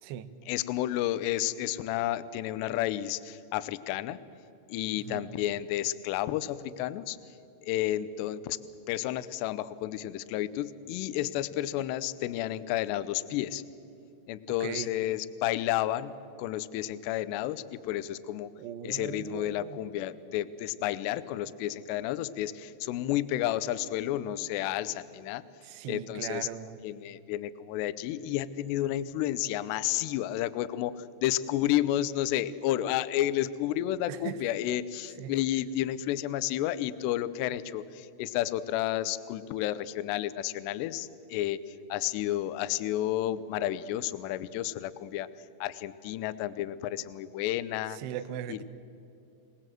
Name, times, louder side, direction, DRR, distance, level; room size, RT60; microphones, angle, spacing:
voice 1, 0.5-4.2 4.7-7.2 7.6-8.6 8.9-13.6 14.3-16.1 16.4-18.5 18.8-25.4 25.9-26.5 26.8-45.3 45.6-48.0 48.5-48.6, left 13 dB, 80° left, 15 dB, 2.6 m, -31 dB
voice 2, 18.6-19.8 25.6-26.8 34.1-34.4 35.2-35.3 47.9-48.6, right 10 dB, 75° right, 10 dB, 2.8 m, -39 dB
27.0 x 19.0 x 7.7 m, 2.7 s
omnidirectional pair, 5.5 m